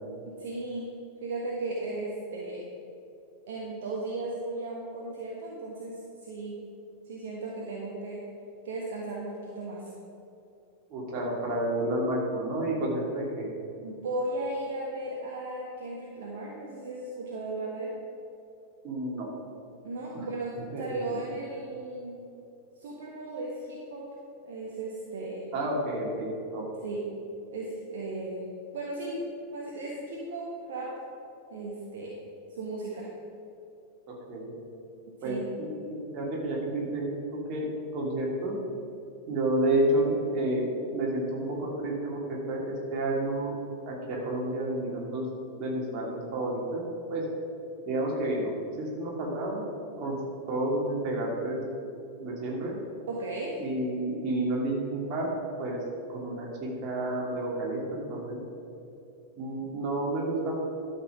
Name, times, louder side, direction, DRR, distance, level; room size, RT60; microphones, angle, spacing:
voice 1, 0.3-0.9 1.2-2.7 3.5-6.6 7.0-8.2 8.6-9.9 13.8-18.0 19.8-22.2 22.8-24.1 24.4-25.4 26.8-27.0 27.5-28.4 28.7-31.0 31.5-32.2 32.5-33.1 35.2-35.5 53.1-53.6, right 2 dB, 55° right, -3 dB, 1.5 m, -36 dB
voice 2, 10.9-13.5 18.8-19.3 20.1-20.3 20.6-21.2 25.5-26.7 34.1-34.5 35.2-38.5 39.3-43.6 43.9-45.3 45.6-47.3 47.9-49.6 50.0-50.2 50.5-51.6 52.2-52.8 53.6-55.3 55.6-55.8 56.1-58.4 59.4-60.5, right 1 dB, 40° right, -3 dB, 2.8 m, -30 dB
12.0 x 5.9 x 6.1 m, 2.7 s
figure-of-eight pair, 90°, 0 cm